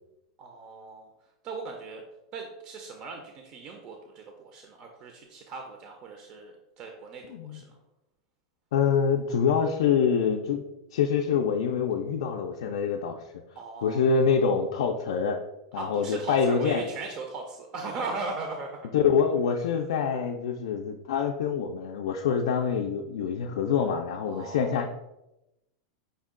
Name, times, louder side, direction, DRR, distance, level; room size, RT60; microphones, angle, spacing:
voice 1, 0.4-1.1 1.4-2.0 2.3-7.2 7.5-7.7 13.6-14.1 15.7-18.7 24.3-24.8, right 3 dB, 30° right, 3 dB, 0.4 m, -38 dB
voice 2, 8.7-10.6 10.9-13.2 13.8-15.4 15.7-16.8 18.9-24.9, left 6 dB, 80° left, 1 dB, 0.3 m, -25 dB
5.3 x 2.2 x 3.5 m, 0.92 s
supercardioid pair, 170°, 3 cm